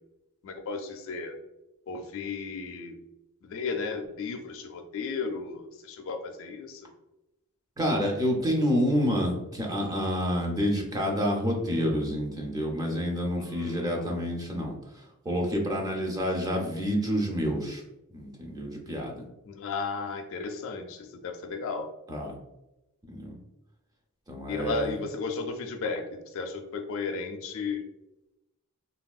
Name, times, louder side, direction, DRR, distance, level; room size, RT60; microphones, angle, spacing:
voice 1, 0.4-1.3 1.9-2.9 3.4-6.8 13.4-14.1 19.5-21.9 24.5-27.9, left 4 dB, 65° left, 4 dB, 0.4 m, -34 dB
voice 2, 7.8-17.8 18.1-19.2 22.1-22.3 23.1-23.4 24.3-25.0, equal, 15° right, 0 dB, 0.5 m, -28 dB
3.3 x 2.2 x 2.3 m, 0.94 s
head